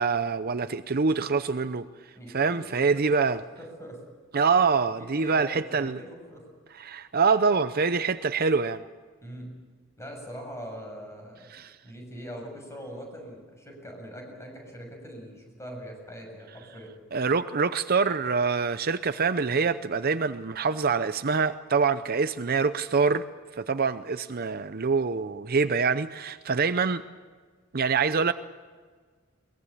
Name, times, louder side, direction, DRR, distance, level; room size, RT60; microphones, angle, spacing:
voice 1, 0.0-1.8 2.3-3.4 4.3-6.0 6.8-8.8 11.5-11.7 17.1-23.2 23.5-27.0 27.7-28.3, right 5 dB, 45° right, 12 dB, 0.6 m, -25 dB
voice 2, 2.1-4.0 5.0-6.4 9.2-9.5 10.0-11.5 11.8-16.9, equal, 15° left, 2 dB, 6.8 m, -42 dB
22.0 x 21.0 x 8.5 m, 1.5 s
head